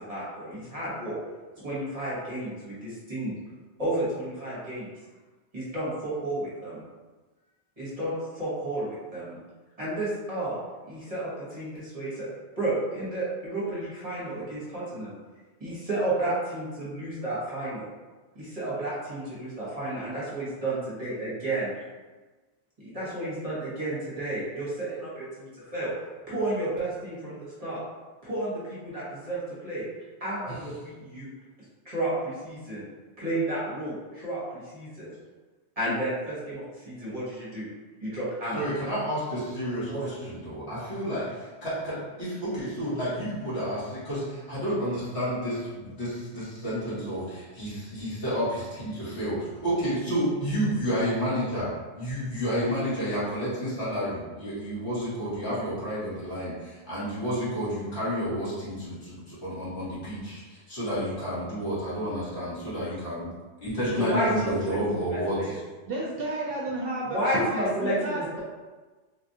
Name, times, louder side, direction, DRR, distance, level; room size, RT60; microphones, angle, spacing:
voice 1, 0.1-1.2 1.6-3.3 3.8-4.9 5.5-6.8 7.8-9.4 9.8-10.6 10.9-12.3 12.6-15.1 15.6-17.9 18.3-21.7 22.8-25.9 26.3-27.8 28.2-29.8 30.2-31.3 31.8-32.8 33.2-35.1 35.8-37.7 38.0-38.7 39.9-40.0 64.0-65.6 67.1-68.4, right 1 dB, 35° right, -9 dB, 1.0 m, -31 dB
voice 2, 38.5-51.7 51.9-63.3 63.6-65.4, equal, 65° left, -11 dB, 1.7 m, -30 dB
voice 3, 65.9-68.4, right 2 dB, 60° right, -4 dB, 0.7 m, -32 dB
3.5 x 2.4 x 2.6 m, 1.3 s
omnidirectional pair, 1.2 m